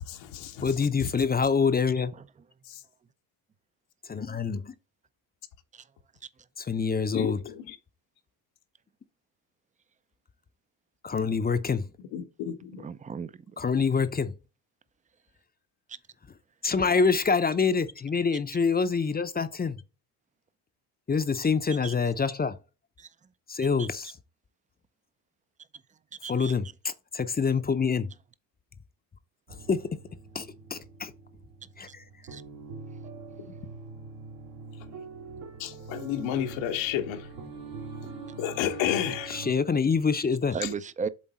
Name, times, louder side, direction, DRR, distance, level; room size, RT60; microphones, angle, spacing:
voice 1, 0.1-1.1 2.7-2.8 7.1-7.8 12.1-12.9 35.6-37.3 38.4-39.5 40.6-40.7, left 10 dB, 75° left, 1.3 m, -32 dB
voice 2, 0.6-2.1 4.1-4.7 6.6-7.4 11.0-11.9 13.6-14.3 16.6-19.8 21.1-22.6 23.5-24.1 26.3-28.1 29.7-30.0 30.3-31.1 31.8-32.0 39.3-40.6, left 5 dB, 20° left, 0.7 m, -26 dB
voice 3, 12.8-13.3 21.8-21.9 23.0-23.1 23.8-23.9 26.2-26.5 32.3-32.4 40.5-41.1, right 6 dB, 15° right, 0.5 m, -34 dB
sound 1, 29.5-39.5, right 4 dB, 75° right, 2.4 m, -43 dB
7.5 x 3.8 x 4.1 m
supercardioid pair, 75°, 46 cm